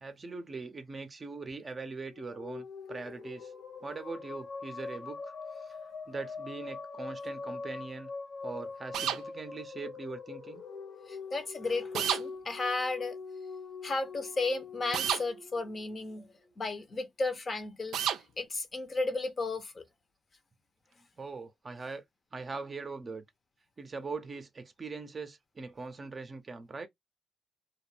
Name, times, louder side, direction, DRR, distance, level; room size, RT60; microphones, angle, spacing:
voice 1, 0.0-3.5 3.8-5.8 6.1-8.1 8.4-10.6 21.2-22.0 22.3-23.2 23.8-26.9, right 4 dB, 30° right, 0.6 m, -41 dB
sound 1, 2.0-16.5, left 4 dB, 70° left, 1.2 m, -43 dB
sound 2, 8.9-9.2 11.9-12.2 14.9-15.2 17.9-18.2, right 9 dB, 80° right, 0.4 m, -29 dB
voice 2, 11.1-13.2 13.8-18.0 18.4-19.8, left 3 dB, 35° left, 0.7 m, -34 dB
2.3 x 2.1 x 3.1 m
cardioid pair, 90°, 0 cm